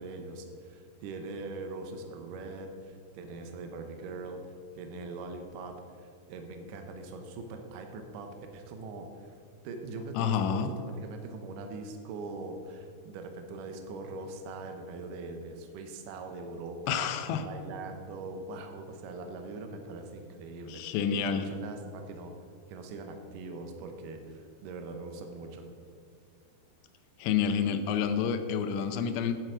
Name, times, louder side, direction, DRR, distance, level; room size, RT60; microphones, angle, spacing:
voice 1, 0.0-4.4 4.8-9.4 9.6-10.6 11.0-17.1 17.4-20.8 21.1-22.3 22.7-25.7, right 3 dB, 80° right, 5 dB, 1.9 m, -42 dB
voice 2, 10.2-10.7 16.9-17.4 20.7-21.5 27.2-29.3, left 7 dB, 80° left, 8 dB, 2.7 m, -29 dB
10.5 x 7.8 x 5.0 m, 2.2 s
omnidirectional pair, 5.1 m